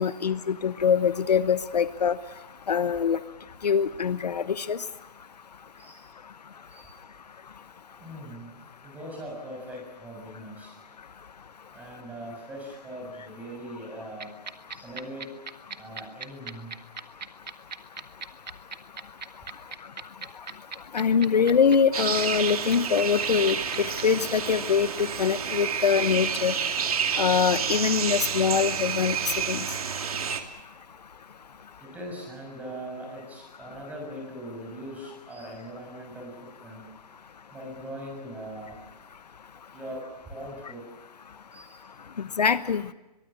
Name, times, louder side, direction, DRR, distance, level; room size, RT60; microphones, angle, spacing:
voice 1, 0.0-2.2 2.7-3.2 3.6-4.8 20.9-26.5 27.2-29.2 29.5-29.6 42.4-42.8, left 6 dB, 70° left, 14 dB, 1.1 m, -23 dB
voice 2, 8.0-8.5 8.8-10.7 11.7-14.3 14.7-15.2 15.8-16.7 31.8-36.8 37.5-38.7 39.7-40.0 40.3-40.8 41.5-41.8, right 1 dB, 5° right, 1 dB, 6.4 m, -40 dB
sound 1, 14.2-24.0, right 5 dB, 85° right, 1.7 m, -37 dB
sound 2, 21.9-30.4, right 7 dB, 60° right, 2.7 m, -29 dB
24.5 x 22.5 x 7.4 m, 1.0 s
hypercardioid pair, 155°, 21 cm